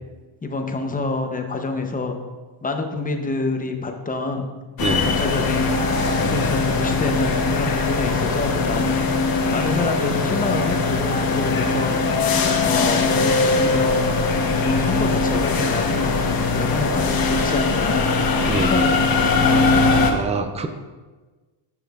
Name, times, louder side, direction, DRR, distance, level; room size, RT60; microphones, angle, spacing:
voice 1, 0.4-2.2 2.6-4.5 4.9-5.7 6.2-9.1 9.5-12.0 12.6-14.1 14.5-16.1 16.5-18.1 18.4-19.6, left 3 dB, 15° left, 4 dB, 0.7 m, -27 dB
sound 1, 4.8-20.1, left 3 dB, 45° left, 1.0 m, -20 dB
voice 2, 20.1-20.7, right 3 dB, 15° right, 7 dB, 0.4 m, -26 dB
10.0 x 6.1 x 2.4 m, 1.3 s
cardioid pair, 120°, 49 cm